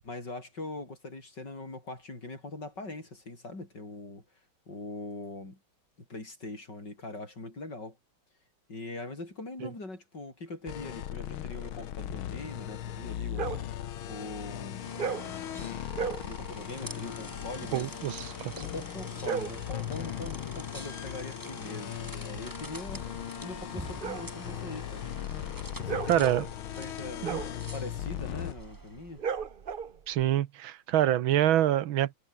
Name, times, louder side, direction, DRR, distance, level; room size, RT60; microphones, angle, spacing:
voice 1, 0.0-4.2 4.7-5.6 6.1-8.0 8.7-14.9 16.2-17.9 18.5-25.1 25.7-26.4 26.8-29.2, left 2 dB, 55° left, 7.4 m, -42 dB
sound 1, 10.7-28.5, left 11 dB, 85° left, 1.9 m, -38 dB
sound 2, 13.3-13.7 14.9-15.3 15.9-16.3 19.0-19.7 22.2-30.2, right 6 dB, 45° right, 0.7 m, -37 dB
sound 3, 14.8-29.2, right 1 dB, 10° right, 5.2 m, -46 dB
voice 2, 17.7-18.5 26.1-26.4 27.2-27.4 30.1-32.2, right 12 dB, 75° right, 1.7 m, -26 dB
omnidirectional pair, 2.2 m